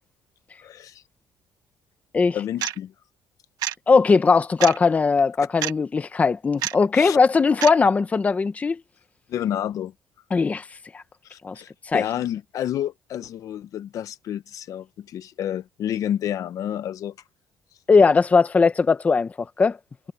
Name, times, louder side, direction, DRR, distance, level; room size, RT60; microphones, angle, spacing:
voice 1, 0.6-1.0 2.3-2.9 6.9-7.2 9.3-9.9 11.2-17.1, left 10 dB, 55° left, 0.9 m, -30 dB
sound 1, 2.6-2.8 3.6-3.7 4.6-4.8 5.6-5.7 6.6-6.7 7.6-7.7, right 13 dB, 70° right, 1.4 m, -26 dB
voice 2, 3.9-8.8 10.3-10.6 10.9-11.0 11.4-11.6 11.9-12.0 17.9-19.8, left 4 dB, 20° left, 0.9 m, -19 dB
cardioid pair, 150°, 7 cm